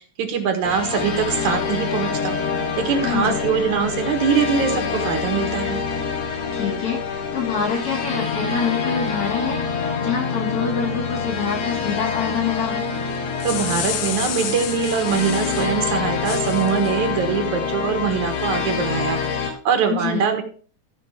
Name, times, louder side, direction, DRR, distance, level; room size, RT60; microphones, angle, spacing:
voice 1, 0.2-2.4 2.8-5.8 13.4-20.4, right 7 dB, 75° right, 5 dB, 2.9 m, -23 dB
sound 1, 0.6-19.5, left 5 dB, 90° left, 3.2 m, -26 dB
voice 2, 3.0-3.4 6.5-12.9 19.8-20.2, left 6 dB, 50° left, -1 dB, 3.4 m, -26 dB
sound 2, 13.1-15.7 16.2-16.9, left 10 dB, 70° left, 1.9 m, -30 dB
14.0 x 5.3 x 4.8 m, 0.42 s
omnidirectional pair, 3.4 m